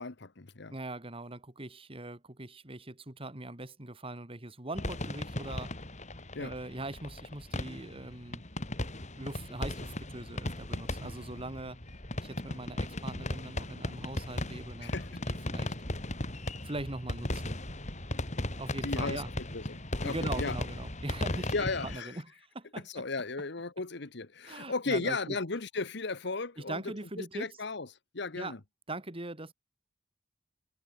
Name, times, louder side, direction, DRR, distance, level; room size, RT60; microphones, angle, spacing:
voice 1, 0.0-0.7 6.3-6.5 14.8-15.2 18.8-19.2 19.5-20.6 21.5-22.2 22.8-26.8 27.3-27.9 28.1-28.6, left 3 dB, 65° left, 1.4 m, -35 dB
voice 2, 0.7-5.7 6.4-8.4 9.2-11.8 12.2-15.0 15.3-15.7 16.6-17.5 18.6-19.3 20.0-22.9 24.4-25.4 26.6-27.6 28.3-28.6 28.9-29.5, right 2 dB, 30° right, 2.5 m, -41 dB
sound 1, 4.7-22.0, left 1 dB, 40° left, 4.3 m, -37 dB
head